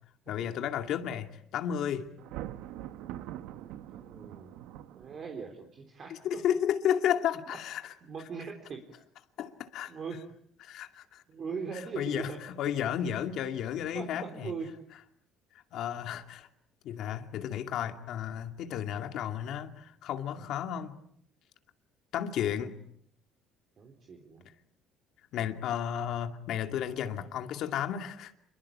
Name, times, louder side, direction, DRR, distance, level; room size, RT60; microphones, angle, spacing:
voice 1, 0.3-2.1 6.1-7.9 9.4-9.9 10.6-11.2 11.7-14.5 15.7-16.5 16.8-21.0 22.1-22.7 25.3-28.3, left 9 dB, 55° left, 2.4 m, -33 dB
Thunder, 2.2-5.5, right 12 dB, 80° right, 1.4 m, -43 dB
voice 2, 3.9-4.5 4.9-6.4 7.5-9.0 9.9-10.2 11.3-12.4 13.9-14.7 23.8-24.5, right 5 dB, 35° right, 3.6 m, -41 dB
28.5 x 23.0 x 8.6 m
cardioid pair, 150°, 0 cm